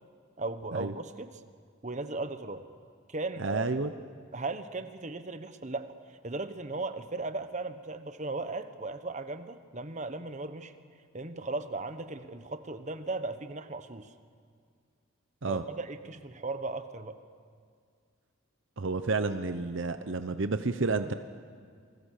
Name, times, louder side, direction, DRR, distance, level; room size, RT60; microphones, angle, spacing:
voice 1, 0.4-1.4 1.8-2.6 3.1-3.7 4.3-5.9 6.2-10.7 11.1-14.1 15.5-17.2, right 3 dB, 35° right, 9 dB, 1.1 m, -37 dB
voice 2, 3.4-3.9 15.4-15.6 18.8-21.1, right 3 dB, 60° right, 9 dB, 0.8 m, -30 dB
29.0 x 21.0 x 6.6 m, 2.2 s
head